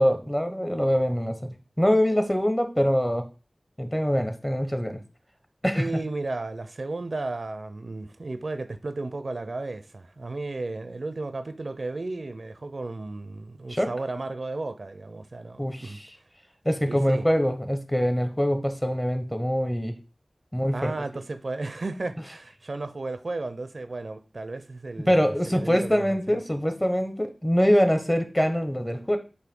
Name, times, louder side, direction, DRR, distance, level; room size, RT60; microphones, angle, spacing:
voice 1, 0.0-1.4 1.8-3.2 3.8-5.0 5.6-5.9 13.7-13.9 15.6-16.1 16.6-19.9 20.5-20.9 25.1-29.2, equal, 15° left, 1.1 m, -24 dB
voice 2, 5.7-16.0 16.8-17.3 20.7-26.4, right 2 dB, 70° right, 0.6 m, -34 dB
8.0 x 2.7 x 5.3 m
wide cardioid pair, 60°, 0 cm